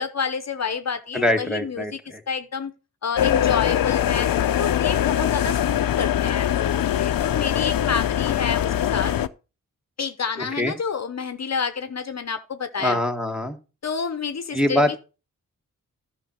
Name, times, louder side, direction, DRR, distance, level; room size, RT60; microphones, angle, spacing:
voice 1, 0.0-1.9 2.3-2.7 3.0-4.3 4.6-9.1 10.0-13.0 13.8-15.0, left 6 dB, 50° left, 0.8 m, -29 dB
voice 2, 1.1-2.2 10.4-10.7 12.8-13.6 14.5-15.0, left 1 dB, ahead, 1.5 m, -23 dB
sound 1, 3.1-9.3, left 11 dB, 80° left, 0.6 m, -22 dB
11.5 x 5.9 x 4.3 m
cardioid pair, 70°, 34 cm